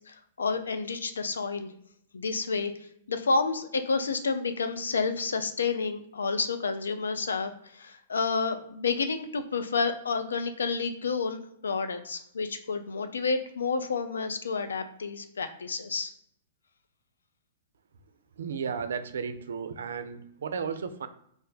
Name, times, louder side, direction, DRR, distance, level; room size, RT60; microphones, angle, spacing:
voice 1, 0.1-1.7 2.1-2.7 3.1-16.1, left 4 dB, 90° left, 9 dB, 0.4 m, -30 dB
voice 2, 18.4-21.1, right 6 dB, 80° right, 11 dB, 0.3 m, -34 dB
2.4 x 2.2 x 3.9 m, 0.70 s
hypercardioid pair, 125°, 0 cm